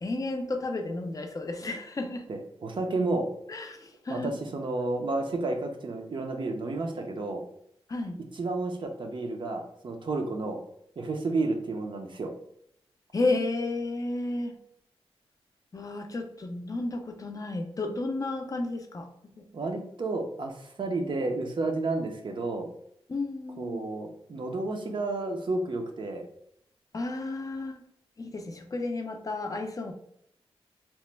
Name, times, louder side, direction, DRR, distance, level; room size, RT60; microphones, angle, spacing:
voice 1, 0.0-2.3 3.5-4.3 7.9-8.2 13.1-14.5 15.7-19.1 19.4-19.5 23.1-23.9 26.9-27.8 28.2-29.9, left 2 dB, 35° left, 5 dB, 0.4 m, -32 dB
voice 2, 2.3-3.3 4.1-7.4 8.3-10.6 11.0-12.3 19.5-22.7 23.6-26.2, right 2 dB, 50° right, 3 dB, 0.5 m, -31 dB
2.9 x 2.1 x 3.2 m, 0.72 s
wide cardioid pair, 95°, 10 cm